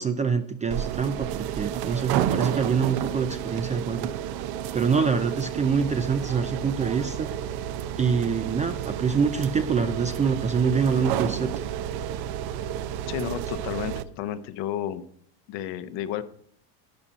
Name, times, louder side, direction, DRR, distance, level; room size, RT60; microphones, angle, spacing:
voice 1, 0.0-4.1 4.7-7.3 8.0-11.5, right 5 dB, 15° right, 8 dB, 0.4 m, -25 dB
sound 1, 0.7-14.0, right 10 dB, 50° right, 0.8 m, -31 dB
voice 2, 13.1-15.0 15.5-16.2, left 11 dB, 55° left, 11 dB, 1.1 m, -32 dB
11.5 x 9.8 x 4.1 m, 0.63 s
supercardioid pair, 105°, 49 cm